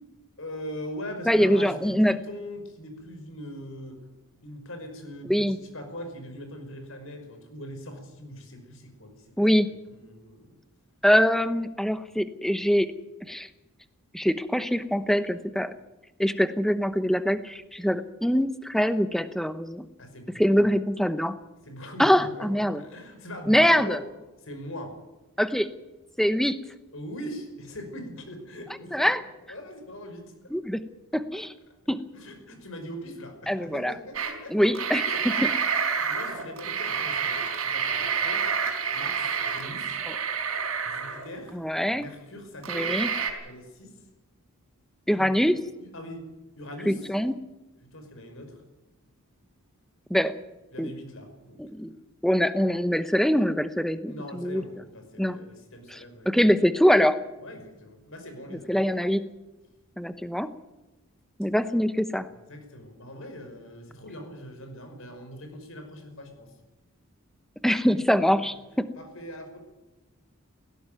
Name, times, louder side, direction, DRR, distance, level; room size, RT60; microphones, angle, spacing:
voice 1, 0.4-4.0 4.4-5.4 5.7-9.3 9.9-10.5 20.0-20.6 21.7-24.0 24.4-24.9 26.9-29.1 29.5-30.5 32.1-34.7 35.1-38.6 38.9-40.0 40.9-41.6 41.9-43.1 43.4-44.0 45.2-45.5 45.8-46.2 46.6-47.0 47.9-48.6 50.7-51.6 51.9-52.0 54.1-56.3 57.4-58.7 62.5-66.5 69.0-69.6, equal, 65° left, 5 dB, 5.5 m, -41 dB
voice 2, 1.3-2.2 5.3-5.6 9.4-9.7 11.0-12.9 13.3-13.5 14.1-15.7 16.2-19.9 20.3-21.4 22.0-22.8 23.5-24.0 25.4-25.7 26.2-26.6 28.9-29.2 30.5-30.8 31.1-31.5 31.9-32.0 33.5-33.9 34.5-35.5 40.1-40.2 41.5-42.1 42.7-43.1 45.1-45.6 46.9-47.3 50.1-50.3 50.8-50.9 51.6-51.9 52.2-54.6 55.2-55.4 55.9-57.1 58.7-59.3 60.0-60.5 61.4-62.3 67.6-68.9, equal, ahead, 12 dB, 0.9 m, -23 dB
sound 1, 34.1-34.3 34.6-41.5 42.0-42.1 42.6-43.3, right 6 dB, 75° right, 4.4 m, -28 dB
18.0 x 16.5 x 9.3 m, 1.1 s
head